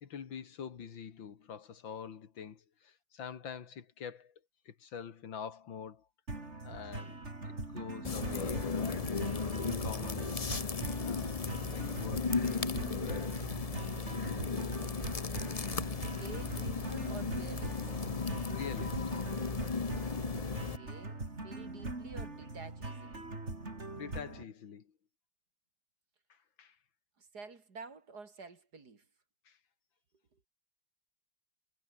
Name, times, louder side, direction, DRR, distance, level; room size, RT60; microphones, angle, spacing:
voice 1, 0.0-4.3 4.7-6.1 6.6-7.2 7.4-9.1 9.8-12.3 13.1-13.4 14.2-14.6 18.5-19.2 24.0-24.9 26.3-26.8 29.5-29.6, left 7 dB, 85° left, 2.6 m, -46 dB
sound 1, 6.3-24.4, right 2 dB, 35° right, 4.3 m, -42 dB
sound 2, 8.0-20.8, left 4 dB, 30° left, 0.7 m, -35 dB
voice 2, 16.0-17.9 20.6-23.3 27.2-29.1 30.3-30.4, right 4 dB, 55° right, 3.3 m, -50 dB
omnidirectional pair, 2.1 m